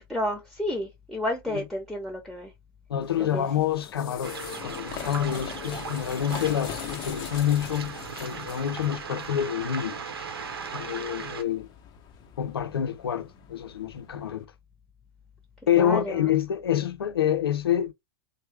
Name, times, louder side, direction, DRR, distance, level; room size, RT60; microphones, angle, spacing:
voice 1, 0.0-2.5 3.2-3.5 15.8-16.3, left 1 dB, ahead, 0.9 m, -31 dB
voice 2, 2.9-10.0 10.7-11.7 12.4-14.5 15.7-17.9, left 10 dB, 85° left, 0.5 m, -27 dB
sound 1, 3.0-14.4, left 9 dB, 35° left, 0.7 m, -42 dB
Waves surf, 4.2-11.4, right 6 dB, 85° right, 0.8 m, -38 dB
3.1 x 2.1 x 3.2 m
hypercardioid pair, 105°, 12 cm